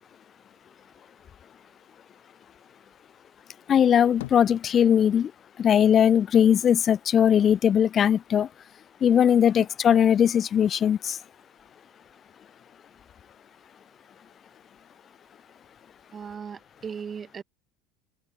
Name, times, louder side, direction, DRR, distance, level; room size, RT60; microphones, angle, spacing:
voice 1, 3.7-5.3 5.6-8.5 9.0-11.2, left 9 dB, 40° left, 0.5 m, -20 dB
sound 1, 4.2-5.2 5.6-7.9 8.3-9.2, left 17 dB, 75° left, 4.1 m, -47 dB
voice 2, 16.1-17.4, right 6 dB, 30° right, 1.0 m, -37 dB
open air
hypercardioid pair, 70°, 0 cm